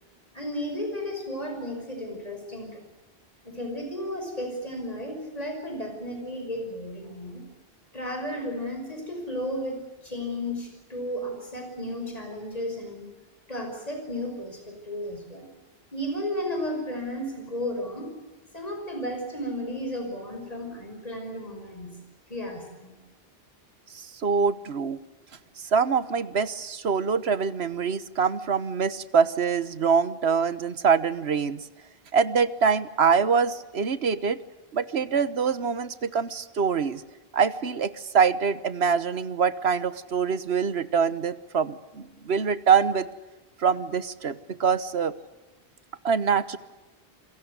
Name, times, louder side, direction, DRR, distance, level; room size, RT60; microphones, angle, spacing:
voice 1, 0.3-2.8 3.4-7.4 7.9-13.1 13.5-15.5 15.9-18.1 18.5-22.0 22.3-23.0, left 1 dB, 40° left, 4 dB, 5.8 m, -33 dB
voice 2, 23.9-25.0 25.6-31.6 32.1-34.4 34.7-37.0 37.3-43.1 43.6-45.1 46.0-46.6, right 6 dB, 85° right, 15 dB, 1.5 m, -24 dB
29.0 x 23.0 x 8.2 m, 1.1 s
omnidirectional pair, 1.0 m